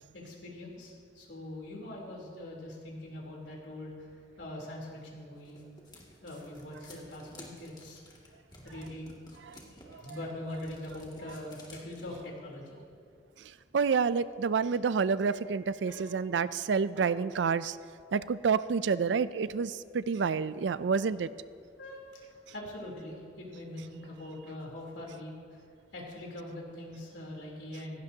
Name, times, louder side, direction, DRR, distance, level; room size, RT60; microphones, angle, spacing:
voice 1, 0.1-3.9 4.4-5.6 6.2-8.2 8.6-9.1 9.9-12.8 15.9-16.1 21.8-25.4 25.9-28.0, left 1 dB, 90° left, -2 dB, 3.5 m, -43 dB
sound 1, 5.0-12.2, left 1 dB, 25° left, 2.2 m, -53 dB
voice 2, 13.7-17.8 18.1-21.3, right 5 dB, 80° right, 16 dB, 0.4 m, -28 dB
16.5 x 16.5 x 2.8 m, 2.3 s
head